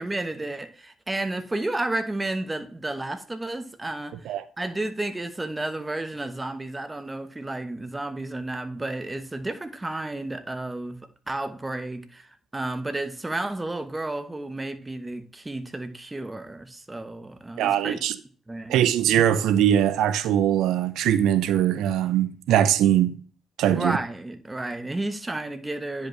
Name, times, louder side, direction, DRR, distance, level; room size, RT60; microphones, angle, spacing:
voice 1, 0.0-11.0 11.3-18.0 18.5-18.8 23.6-26.1, right 2 dB, 15° right, 1.1 m, -32 dB
voice 2, 17.6-18.2 18.7-23.2 23.6-24.0, right 10 dB, 85° right, 0.5 m, -21 dB
9.9 x 5.3 x 3.2 m
cardioid pair, 90°, 0 cm